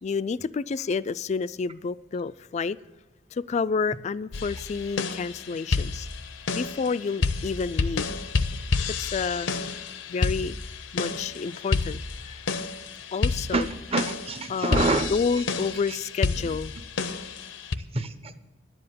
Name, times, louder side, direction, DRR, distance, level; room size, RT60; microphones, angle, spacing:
voice 1, 0.0-2.8 3.3-6.1 6.5-8.1 8.9-9.5 10.1-10.6 10.9-12.3 13.1-13.7 14.5-16.7, left 5 dB, 35° left, 17 dB, 0.3 m, -29 dB
sound 1, 4.3-17.8, left 4 dB, 80° left, 0.7 m, -30 dB
voice 2, 13.5-15.1 15.9-16.0 16.4-16.5 17.9-18.4, right 3 dB, 30° right, 11 dB, 0.8 m, -27 dB
11.0 x 7.8 x 7.4 m, 1.2 s
head